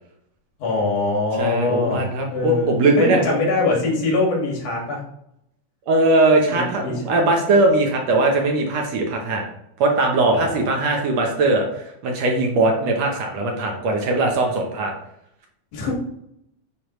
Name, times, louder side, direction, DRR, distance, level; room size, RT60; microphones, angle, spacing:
voice 1, 0.6-5.0 6.5-7.2 10.3-10.7 15.7-15.9, left 3 dB, 80° left, -2 dB, 3.3 m, -23 dB
voice 2, 1.4-3.2 5.9-9.4 9.8-14.9, right 2 dB, 65° right, 1 dB, 1.9 m, -20 dB
9.8 x 3.5 x 3.1 m, 0.77 s
omnidirectional pair, 3.5 m